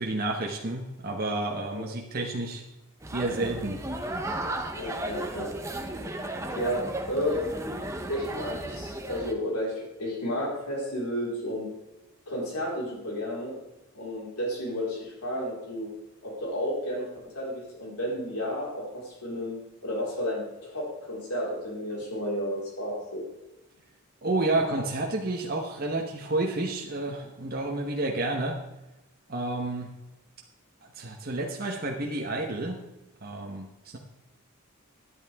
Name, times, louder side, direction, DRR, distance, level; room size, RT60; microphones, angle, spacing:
voice 1, 0.0-2.6 3.1-3.8 24.2-28.6 29.3-29.9 30.8-32.8 33.2-34.0, right 2 dB, 40° right, 0 dB, 1.1 m, -30 dB
sound 1, 3.0-9.3, right 1 dB, 15° right, 0.8 m, -35 dB
voice 2, 4.7-5.5 6.5-7.5 8.1-11.7 12.3-13.5 13.9-15.9 16.2-19.6 19.8-23.2, equal, 90° left, -4 dB, 4.5 m, -32 dB
11.5 x 11.0 x 3.6 m, 0.98 s
head